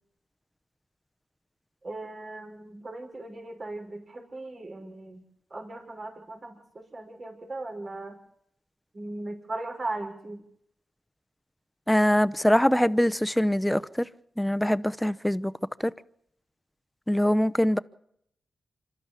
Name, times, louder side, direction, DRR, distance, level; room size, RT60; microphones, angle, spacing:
voice 1, 1.8-5.2 5.5-8.2 8.9-10.4, right 2 dB, 50° right, 5.5 m, -38 dB
voice 2, 11.9-14.1 14.4-15.5 15.8-15.9 17.1-17.8, equal, 5° left, 0.8 m, -23 dB
26.0 x 12.5 x 8.4 m
supercardioid pair, 45°, 0 cm